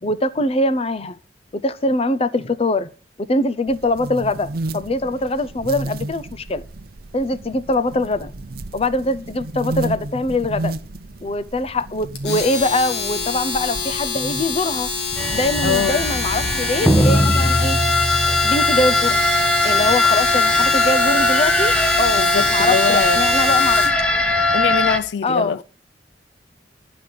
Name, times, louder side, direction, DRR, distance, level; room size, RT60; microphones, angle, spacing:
voice 1, 0.0-1.2 1.6-2.9 3.2-6.6 7.1-8.3 8.7-10.7 11.2-14.9 15.3-17.8 18.2-19.2 19.6-21.7 22.0-23.8 25.2-25.5, left 2 dB, 35° left, 0.6 m, -22 dB
sound 1, 3.7-16.5, right 2 dB, 60° right, 0.7 m, -33 dB
Domestic sounds home sounds, 12.1-24.0, left 5 dB, 70° left, 1.9 m, -26 dB
sound 2, 15.2-25.0, left 1 dB, 5° left, 0.8 m, -19 dB
voice 2, 15.6-16.0 22.2-23.2 24.5-25.6, left 6 dB, 85° left, 0.4 m, -22 dB
11.0 x 5.1 x 7.7 m
head